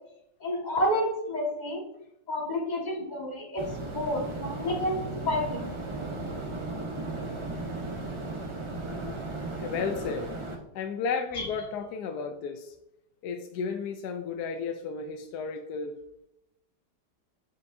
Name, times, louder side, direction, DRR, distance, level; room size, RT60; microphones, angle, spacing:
voice 1, 0.4-1.8 2.3-3.6 3.9-5.7 11.4-11.5, left 1 dB, 25° left, -2 dB, 1.5 m, -29 dB
sound 1, 3.6-10.6, right 2 dB, 50° right, 0.3 m, -36 dB
voice 2, 9.6-10.3 10.7-12.7 13.2-15.9, left 5 dB, 75° left, 6 dB, 1.1 m, -33 dB
7.5 x 5.4 x 2.6 m, 0.83 s
omnidirectional pair, 1.9 m